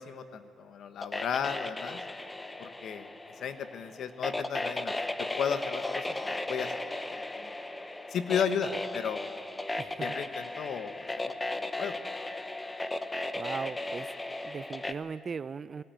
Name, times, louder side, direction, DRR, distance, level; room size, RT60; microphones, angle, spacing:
voice 1, 0.0-2.0 2.6-4.9 5.4-6.7 7.3-7.5 8.1-9.2 10.0-10.9 11.2-12.0, left 7 dB, 70° left, 10 dB, 1.3 m, -34 dB
sound 1, 1.0-14.9, left 2 dB, 15° left, 1.0 m, -36 dB
voice 2, 9.8-10.2 13.3-14.1 14.4-15.8, right 5 dB, 40° right, 16 dB, 0.5 m, -38 dB
18.0 x 17.5 x 9.2 m, 2.3 s
cardioid pair, 90°, 0 cm